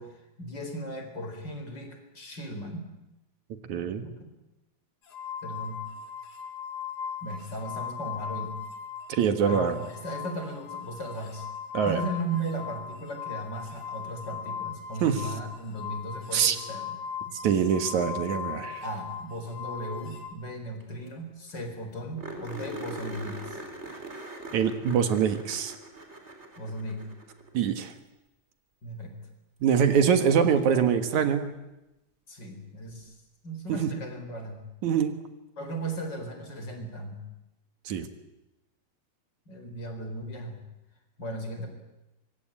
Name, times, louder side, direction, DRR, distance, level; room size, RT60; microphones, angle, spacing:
voice 1, 0.0-2.9 4.0-4.3 5.4-5.8 7.2-8.5 9.5-11.5 11.8-17.0 17.3-17.4 18.8-23.6 26.6-27.0 28.8-29.2 30.4-30.9 32.3-33.1 33.4-34.6 35.6-37.2 39.5-40.6 41.2-41.7, right 1 dB, 35° left, 5 dB, 4.8 m, -36 dB
voice 2, 3.7-4.0 9.1-9.7 11.7-12.0 15.0-15.2 16.3-16.6 17.4-18.8 24.5-25.8 27.5-27.9 29.6-31.5 33.7-33.9 34.8-35.2 37.9-38.1, right 7 dB, 75° right, 8 dB, 3.0 m, -24 dB
sound 1, 5.1-9.1 9.4-20.3, left 7 dB, 90° left, 4.7 m, -38 dB
sound 2, 20.8-20.9 21.1-21.2 21.5-21.6 22.2-27.6 29.9-30.0 32.9-33.0, right 2 dB, 20° right, 4.0 m, -41 dB
25.0 x 23.0 x 8.9 m, 0.96 s
omnidirectional pair, 3.4 m